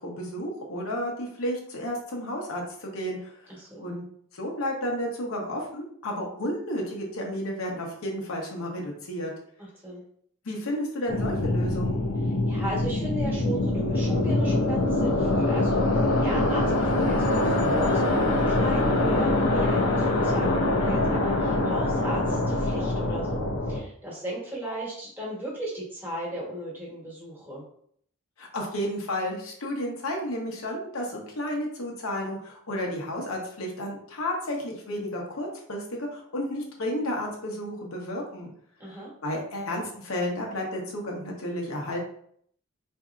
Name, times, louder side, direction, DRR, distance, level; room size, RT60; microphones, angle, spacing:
voice 1, 0.0-4.0 4.3-9.3 10.4-12.0 28.4-38.5 38.9-42.0, left 1 dB, 85° left, 0 dB, 0.9 m, -32 dB
voice 2, 3.5-3.9 9.6-10.0 12.2-15.8 16.2-27.6 38.8-39.1, right 1 dB, 10° right, -5 dB, 1.2 m, -36 dB
sound 1, 11.1-23.8, left 2 dB, 70° left, 0.5 m, -24 dB
4.1 x 2.7 x 2.4 m, 0.64 s
head